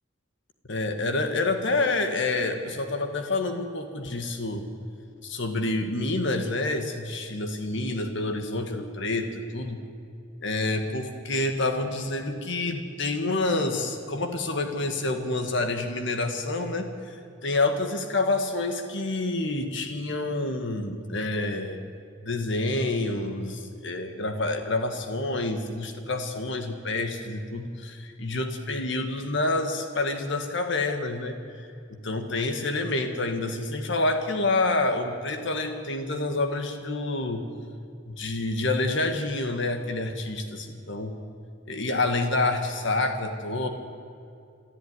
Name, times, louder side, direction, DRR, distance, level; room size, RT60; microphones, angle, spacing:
voice 1, 0.7-4.6 5.2-9.8 10.4-17.2 17.4-21.8 22.2-31.4 31.9-37.4 38.1-41.1 41.7-43.7, left 2 dB, 65° left, 6 dB, 1.8 m, -28 dB
27.0 x 13.0 x 9.7 m, 2.5 s
head